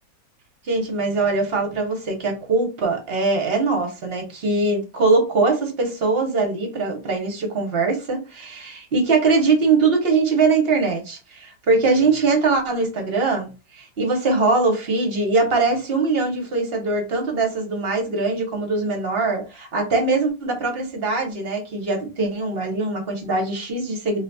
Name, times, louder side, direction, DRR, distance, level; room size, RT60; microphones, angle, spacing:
voice 1, 0.6-24.2, right 3 dB, 45° right, 1.0 m, -22 dB
3.9 x 2.6 x 2.2 m
omnidirectional pair, 1.6 m